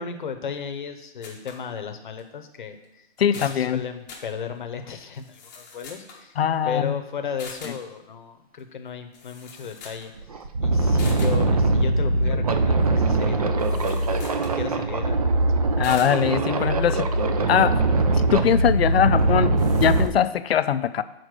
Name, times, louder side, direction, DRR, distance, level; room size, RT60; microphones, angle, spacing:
voice 1, 0.0-3.1 3.3-10.1 10.6-15.2, left 6 dB, 50° left, 7 dB, 0.9 m, -35 dB
sound 1, 1.2-1.6 2.2-2.3 2.8-2.9 3.2-3.6 4.1-4.3 5.1-6.3 7.4-7.8 8.9-9.0 9.1-10.1 10.4-10.5 11.0-11.4 13.6-14.6 15.8-16.2 19.2-19.3 19.6-20.1, left 4 dB, 15° left, 0.8 m, -42 dB
voice 2, 3.2-3.8 6.4-7.0 15.8-17.1 17.5-17.8 18.2-21.0, left 9 dB, 65° left, 14 dB, 0.5 m, -22 dB
sound 2, 9.7-9.8 10.2-20.1, right 2 dB, 35° right, 0.4 m, -22 dB
6.7 x 4.2 x 6.3 m, 0.89 s
hypercardioid pair, 165°, 33 cm